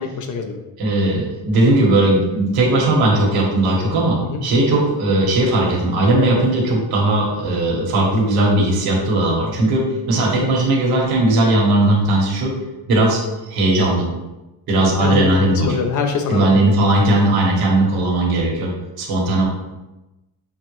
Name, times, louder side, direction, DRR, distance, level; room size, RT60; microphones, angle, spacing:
voice 1, 0.2-0.6 4.2-4.4 10.3-10.5 15.0-16.6, left 5 dB, 50° left, 5 dB, 0.6 m, -24 dB
voice 2, 0.8-9.8 10.1-12.5 12.9-13.2 13.5-14.0 14.7-15.7 16.3-18.7 19.0-19.5, right 2 dB, 70° right, -2 dB, 1.3 m, -17 dB
5.8 x 2.1 x 3.1 m, 1.0 s
cardioid pair, 130°, 38 cm